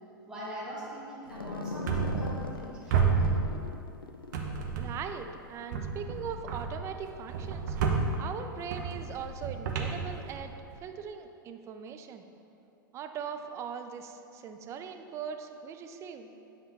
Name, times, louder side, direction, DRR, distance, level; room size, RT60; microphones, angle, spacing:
voice 1, 0.3-3.2, equal, 5° right, -8 dB, 1.5 m, -42 dB
sound 1, 1.2-5.9, left 3 dB, 85° left, 0.4 m, -41 dB
sound 2, 1.9-2.6 2.9-4.0 4.3-5.2 5.7-10.8, right 5 dB, 55° right, 0.7 m, -31 dB
voice 2, 4.8-10.5 10.8-12.2 12.9-16.3, right 7 dB, 25° right, 7 dB, 0.4 m, -40 dB
8.5 x 3.6 x 4.1 m, 2.7 s
figure-of-eight pair, 95°, 12 cm